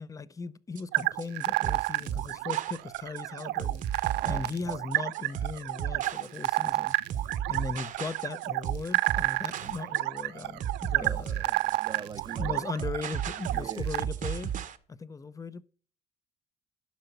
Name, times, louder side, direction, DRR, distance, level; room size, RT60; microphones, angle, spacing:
voice 1, 0.0-11.6 12.4-14.5 14.9-15.6, left 4 dB, 20° left, 0.6 m, -38 dB
sound 1, 0.8-14.8, right 9 dB, 50° right, 1.0 m, -35 dB
sound 2, 0.9-14.1, right 19 dB, 85° right, 0.5 m, -31 dB
voice 2, 4.2-4.8 11.0-11.2 11.8-12.6 13.5-13.9, right 6 dB, 25° right, 0.5 m, -42 dB
11.5 x 5.7 x 6.6 m
cardioid pair, 110°, 17 cm